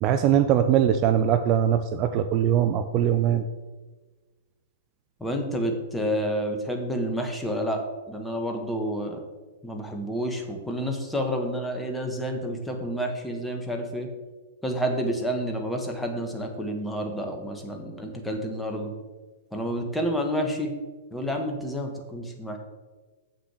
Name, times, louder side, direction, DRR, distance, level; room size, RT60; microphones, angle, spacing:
voice 1, 0.0-3.4, right 10 dB, 35° right, 9 dB, 0.5 m, -21 dB
voice 2, 5.2-9.2 9.6-14.1 14.6-18.9 19.5-20.7 21.1-22.6, equal, 5° left, 2 dB, 1.5 m, -29 dB
7.6 x 6.5 x 6.3 m, 1.3 s
figure-of-eight pair, 105°, 0 cm